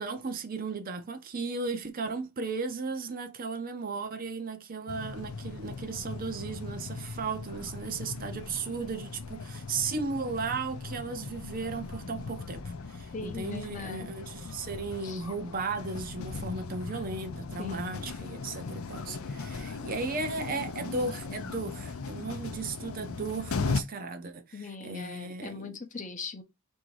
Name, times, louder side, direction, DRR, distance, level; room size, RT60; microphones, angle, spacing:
voice 1, 0.0-25.8, right 4 dB, 40° right, 0.6 m, -35 dB
sound 1, 4.9-23.8, left 4 dB, 75° left, 0.5 m, -38 dB
voice 2, 13.1-14.1 15.0-15.2 17.6-18.0 24.5-26.4, left 4 dB, 35° left, 0.7 m, -40 dB
3.7 x 2.7 x 4.6 m
head